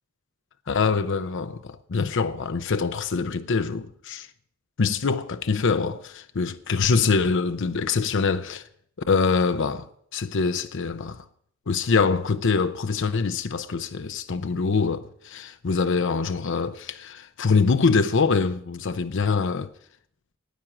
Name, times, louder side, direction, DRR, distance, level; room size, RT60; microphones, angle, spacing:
voice 1, 0.7-4.3 4.8-8.6 9.1-11.2 11.7-19.7, left 4 dB, 60° left, 0.6 m, -24 dB
10.5 x 9.0 x 8.7 m
head